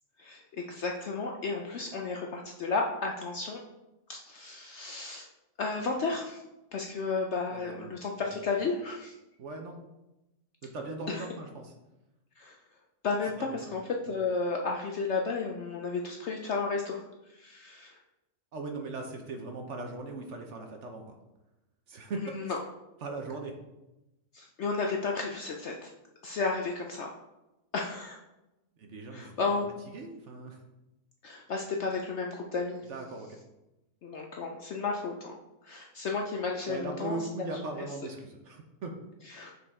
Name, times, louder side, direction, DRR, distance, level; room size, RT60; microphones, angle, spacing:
voice 1, 0.2-3.6 4.1-5.3 5.6-6.4 6.7-9.1 11.1-11.2 12.4-12.6 13.0-18.0 22.1-22.6 24.3-25.9 26.2-27.1 27.7-28.2 29.1-29.7 31.2-32.9 34.0-35.3 35.6-37.5 39.3-39.5, left 4 dB, 65° left, 1 dB, 0.7 m, -33 dB
voice 2, 7.5-8.0 8.2-8.5 9.4-9.8 10.6-11.7 13.6-13.7 18.5-21.1 21.9-22.2 23.0-23.5 28.8-29.3 29.9-30.6 32.9-33.4 36.7-39.0, right 3 dB, 55° right, 3 dB, 0.9 m, -39 dB
6.8 x 4.8 x 3.6 m, 0.97 s
omnidirectional pair, 1.7 m